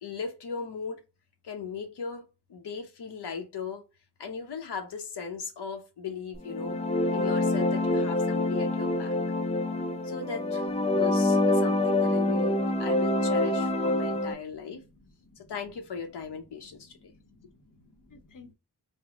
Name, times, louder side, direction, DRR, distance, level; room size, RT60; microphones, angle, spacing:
voice 1, 0.0-1.0 1.4-3.8 4.2-6.8 7.1-9.1 10.0-14.8 15.4-17.1, left 5 dB, 85° left, 0.8 m, -38 dB
sound 1, 6.4-14.3, left 2 dB, 15° left, 0.5 m, -26 dB
voice 2, 14.7-15.5 16.6-18.5, left 3 dB, 55° left, 0.8 m, -56 dB
3.5 x 2.0 x 3.5 m
wide cardioid pair, 65°, 39 cm